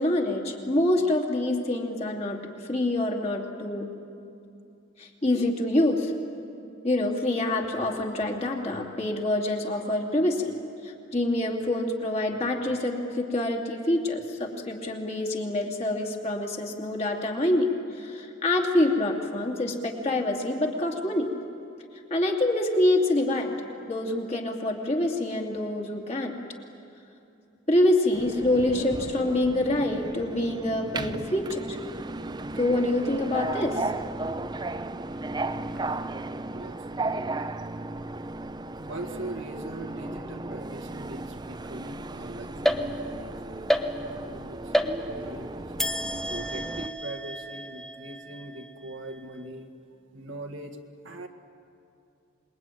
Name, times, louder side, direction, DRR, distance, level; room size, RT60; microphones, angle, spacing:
voice 1, 0.0-3.9 5.0-6.1 6.8-10.5 10.8-21.3 22.1-26.3 27.7-31.8 32.6-33.9, left 1 dB, 30° left, 1 dB, 2.7 m, -26 dB
Subway metro underground, 28.1-46.9, right 2 dB, 20° right, 0.5 m, -35 dB
voice 2, 38.8-43.6 43.9-45.8 46.0-49.7 50.1-51.3, right 1 dB, 65° right, 5 dB, 1.9 m, -41 dB
sound 1, 42.6-43.3 43.7-44.3 44.7-45.4 45.8-49.2, equal, ahead, 0.9 m, -30 dB
27.5 x 22.0 x 9.3 m, 2.7 s
head